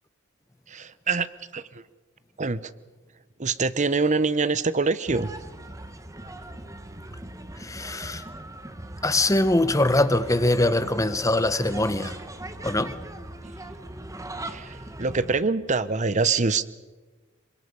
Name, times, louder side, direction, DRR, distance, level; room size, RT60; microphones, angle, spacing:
voice 1, 0.7-1.3 1.5-1.6 2.4-2.7 3.4-5.3 14.5-16.7, right 4 dB, 35° right, 0.8 m, -24 dB
sound 1, 5.1-15.4, right 1 dB, 15° right, 1.2 m, -40 dB
voice 2, 7.6-8.2 9.0-12.2 12.6-13.0, left 1 dB, 15° left, 1.0 m, -23 dB
26.5 x 24.0 x 5.5 m
head